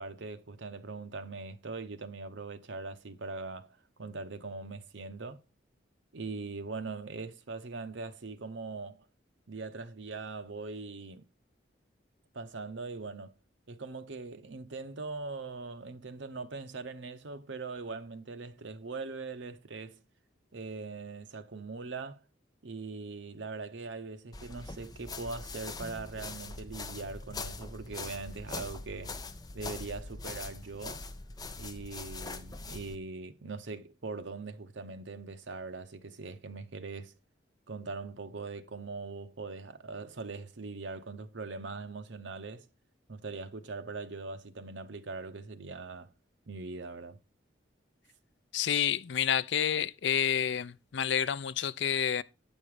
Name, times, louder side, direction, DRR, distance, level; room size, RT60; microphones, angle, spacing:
voice 1, 0.0-5.4 6.1-9.0 9.5-11.2 12.3-13.3 13.7-20.0 20.5-22.2 22.6-29.2 29.5-31.0 31.6-37.1 37.7-42.7 43.1-46.1 46.5-47.2, right 3 dB, 75° right, 0.8 m, -41 dB
sound 1, 24.3-33.0, left 3 dB, 20° left, 0.6 m, -42 dB
voice 2, 48.5-52.2, left 9 dB, 65° left, 0.4 m, -29 dB
8.8 x 5.3 x 4.8 m
head